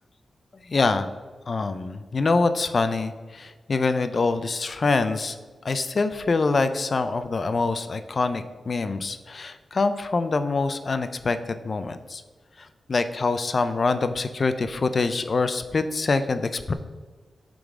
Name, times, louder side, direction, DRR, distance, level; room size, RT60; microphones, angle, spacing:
voice 1, 0.7-1.1 1.5-5.4 5.6-12.2 12.6-16.7, left 3 dB, 45° left, 10 dB, 0.4 m, -25 dB
8.0 x 3.8 x 3.6 m, 1.4 s
wide cardioid pair, 120°, 0 cm